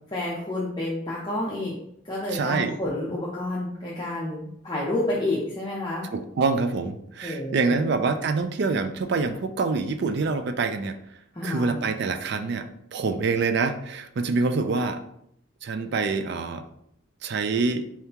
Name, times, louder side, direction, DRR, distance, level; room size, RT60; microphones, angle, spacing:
voice 1, 0.1-1.7 2.0-6.1 7.2-7.8 11.3-11.8, left 1 dB, 20° left, -6 dB, 0.6 m, -29 dB
voice 2, 2.3-2.8 6.1-11.0 11.4-15.0 15.6-16.6 17.2-17.9, right 4 dB, 55° right, 8 dB, 0.4 m, -26 dB
4.4 x 3.5 x 2.9 m, 0.73 s
head